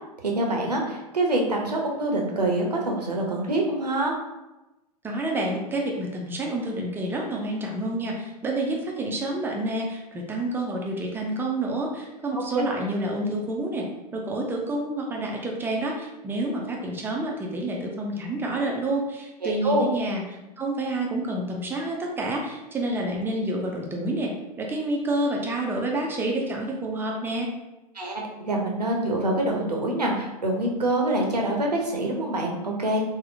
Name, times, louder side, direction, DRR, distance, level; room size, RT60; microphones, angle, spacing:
voice 1, 0.2-4.1 12.3-12.6 19.4-19.9 27.9-33.0, right 1 dB, 85° right, 0 dB, 0.6 m, -25 dB
voice 2, 5.0-20.2 20.6-24.3 24.6-27.5, right 1 dB, 10° right, -1 dB, 0.4 m, -28 dB
3.5 x 2.0 x 2.5 m, 1.0 s
figure-of-eight pair, 90°, 20 cm